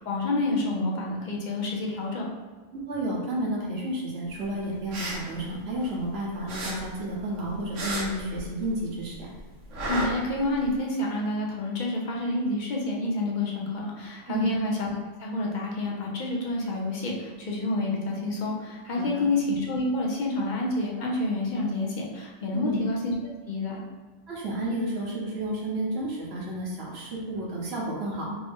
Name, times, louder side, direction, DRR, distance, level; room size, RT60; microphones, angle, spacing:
voice 1, 0.0-2.2 9.9-14.9 15.2-23.1 23.5-23.8, left 2 dB, 45° left, -2 dB, 0.7 m, -28 dB
voice 2, 2.7-9.3 14.3-14.6 19.0-19.3 22.5-22.9 24.3-28.4, right 1 dB, 60° right, -4 dB, 1.2 m, -31 dB
sound 1, 4.7-6.1 6.5-8.9 9.1-10.7, right 1 dB, 80° right, 1.1 m, -33 dB
3.5 x 2.6 x 3.4 m, 1.4 s
omnidirectional pair, 1.3 m